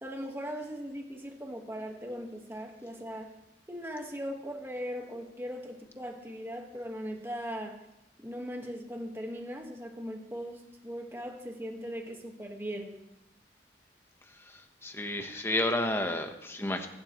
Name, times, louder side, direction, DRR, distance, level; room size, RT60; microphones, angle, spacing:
voice 1, 0.0-3.3 3.7-7.8 8.2-13.0, equal, 15° right, 2 dB, 1.6 m, -39 dB
voice 2, 14.5-16.9, left 1 dB, 15° left, 5 dB, 1.2 m, -31 dB
24.0 x 12.0 x 3.2 m, 0.86 s
head